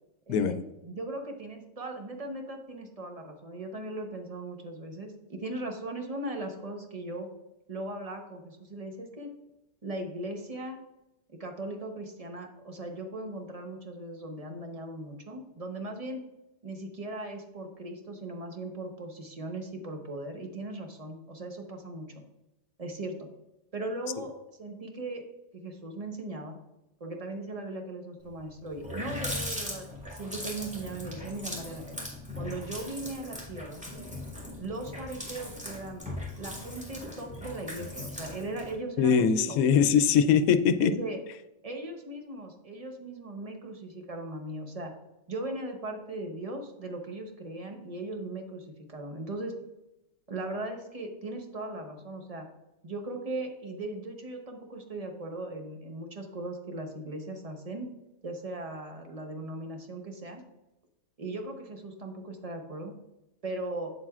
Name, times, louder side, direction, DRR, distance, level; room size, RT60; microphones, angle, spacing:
voice 1, 0.3-0.6 0.8-7.3 7.7-9.3 9.8-10.8 11.4-16.2 16.6-22.1 22.8-23.3 23.7-24.3 24.6-25.2 25.5-26.6 27.0-31.8 32.3-33.8 34.6-36.0 36.4-39.6 40.8-41.2 41.6-44.9 45.3-49.5 50.3-52.5 52.8-57.9 58.2-60.4 61.2-62.9 63.4-63.9, right 2 dB, 30° right, 4 dB, 0.9 m, -38 dB
Water tap faucet, 28.3-28.4 28.7-38.8, left 1 dB, 5° right, 1.8 m, -39 dB
voice 2, 39.0-40.9, left 7 dB, 80° left, 11 dB, 1.0 m, -22 dB
8.4 x 7.3 x 2.4 m, 0.93 s
omnidirectional pair, 1.5 m